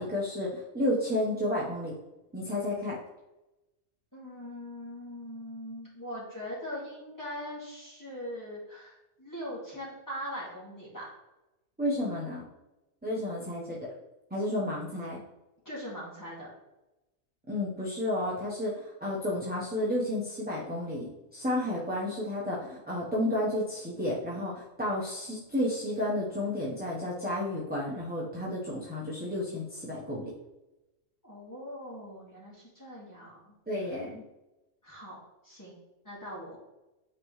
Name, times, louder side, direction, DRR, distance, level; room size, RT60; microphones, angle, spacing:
voice 1, 0.0-2.0 2.3-3.0 11.8-12.4 13.0-13.8 14.3-15.2 17.5-30.3 33.7-34.2, left 1 dB, 10° right, -7 dB, 0.9 m, -31 dB
voice 2, 4.1-11.0 15.7-16.5 31.2-33.6 33.8-33.9 34.8-35.2 35.4-35.7 36.0-36.6, equal, 15° left, -6 dB, 2.1 m, -41 dB
8.5 x 3.8 x 3.2 m, 1.0 s
omnidirectional pair, 1.4 m